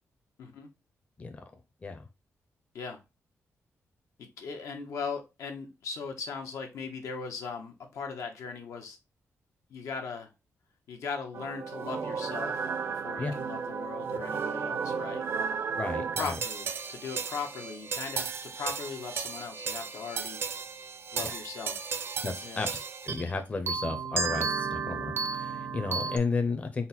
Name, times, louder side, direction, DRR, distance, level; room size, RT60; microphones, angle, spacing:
voice 1, 0.4-0.7 2.7-3.0 4.4-9.0 9.7-10.3 10.9-15.2 16.2-20.4 21.1-21.9 22.4-22.7, left 5 dB, 90° left, 0.9 m, -39 dB
sound 1, 11.3-23.3 23.7-26.2, right 5 dB, 50° right, 0.4 m, -34 dB
voice 2, 15.8-16.4 21.2-21.3 22.2-22.7 23.0-26.9, left 4 dB, 25° left, 0.5 m, -33 dB
4.1 x 2.1 x 4.1 m
wide cardioid pair, 140°, 5 cm